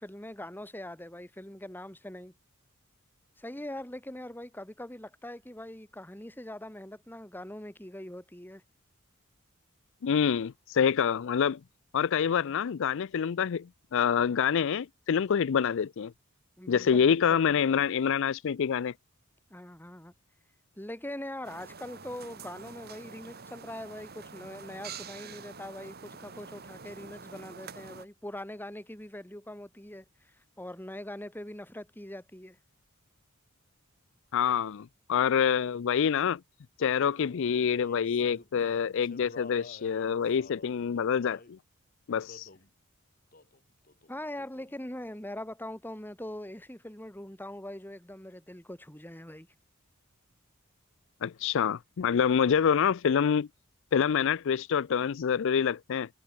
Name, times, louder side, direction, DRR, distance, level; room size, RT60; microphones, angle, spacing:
voice 1, 0.0-2.3 3.4-8.6 16.6-17.8 19.5-20.1 20.8-32.6 44.1-49.5, left 1 dB, 10° left, 3.6 m, -42 dB
voice 2, 10.0-11.6 11.9-16.1 16.7-18.9 34.3-36.4 36.8-41.6 42.1-42.5 51.2-53.5 53.9-56.1, left 7 dB, 60° left, 0.4 m, -26 dB
sound 1, 21.4-28.1, right 5 dB, 45° right, 2.5 m, -46 dB
Male singing, 37.1-41.5 42.3-42.7 43.3-43.6 43.9-44.8, left 2 dB, 40° left, 5.3 m, -50 dB
head